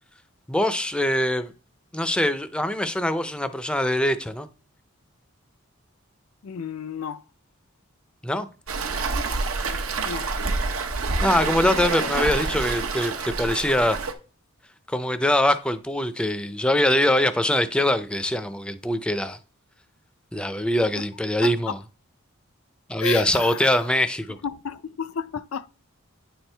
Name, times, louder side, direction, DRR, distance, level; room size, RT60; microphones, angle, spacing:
voice 1, 0.5-1.5 1.9-4.5 8.2-8.5 11.2-14.0 14.9-19.4 20.3-21.7 22.9-24.4, left 1 dB, 5° left, 0.4 m, -23 dB
voice 2, 6.4-7.2 9.6-9.8 10.0-10.3 11.9-12.7 21.0-21.1 21.4-21.8 23.0-24.0 24.3-25.8, left 7 dB, 80° left, 0.4 m, -33 dB
Waves surf, 8.7-14.1, right 3 dB, 90° right, 1.0 m, -27 dB
9.5 x 4.4 x 3.3 m
head